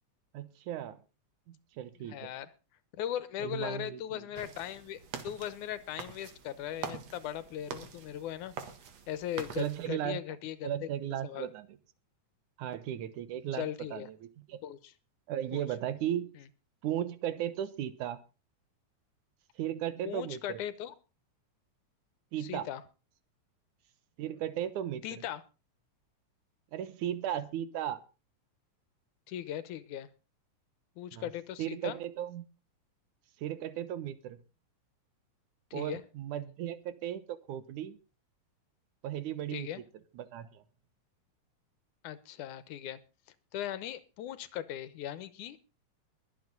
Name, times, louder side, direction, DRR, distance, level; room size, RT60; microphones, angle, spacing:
voice 1, 0.3-1.0 1.5-2.3 3.4-4.2 9.6-10.2 10.6-11.7 12.6-14.6 15.3-16.3 16.8-18.2 19.6-20.6 22.3-22.7 24.2-25.0 26.7-28.0 31.1-31.3 31.6-32.4 33.4-34.4 35.7-38.0 39.0-39.7 40.1-40.6, right 11 dB, 85° right, 2.6 m, -36 dB
voice 2, 2.0-2.5 3.0-8.5 9.1-10.7 11.2-11.5 13.5-14.1 14.6-14.9 15.5-15.6 16.3-16.5 20.1-20.9 22.4-22.8 25.0-25.4 29.3-30.1 31.0-32.0 35.7-36.0 39.5-39.8 42.0-43.0 43.5-45.6, left 11 dB, 90° left, 2.6 m, -38 dB
sound 1, 4.3-9.9, right 6 dB, 65° right, 2.7 m, -45 dB
22.0 x 7.9 x 3.9 m
omnidirectional pair, 3.4 m